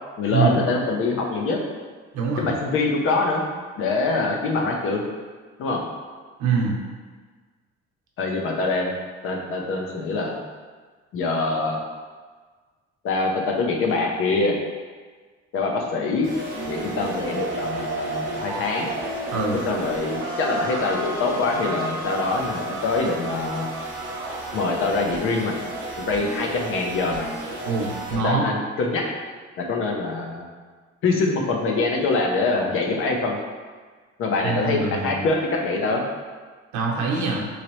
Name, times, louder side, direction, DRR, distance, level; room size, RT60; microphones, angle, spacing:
voice 1, 0.2-1.6 2.4-3.4 3.8-5.0 5.6-5.8 8.2-8.9 9.2-10.4 11.1-11.8 13.0-14.6 15.5-16.3 16.7-18.9 19.7-23.7 24.5-25.5 26.1-27.3 28.1-29.0 29.6-30.5 31.0-33.4 34.2-36.0, left 3 dB, 45° left, 0 dB, 0.6 m, -24 dB
voice 2, 2.1-2.5 6.4-6.8 19.3-19.6 27.7-28.4 34.4-35.2 36.7-37.4, right 4 dB, 80° right, -2 dB, 0.8 m, -24 dB
sound 1, 16.2-28.1, right 2 dB, 30° right, 0.8 m, -32 dB
3.8 x 3.1 x 3.0 m, 1.5 s
cardioid pair, 175°, 29 cm